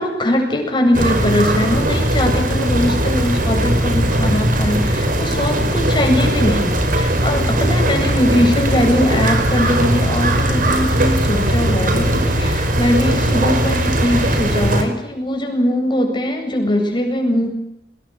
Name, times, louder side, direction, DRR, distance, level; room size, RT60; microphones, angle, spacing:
voice 1, 0.0-6.7 7.0-17.5, left 1 dB, 25° left, 2 dB, 8.0 m, -20 dB
sound 1, 0.9-14.8, right 1 dB, 50° right, 5.0 m, -18 dB
25.0 x 21.0 x 8.0 m, 0.82 s
head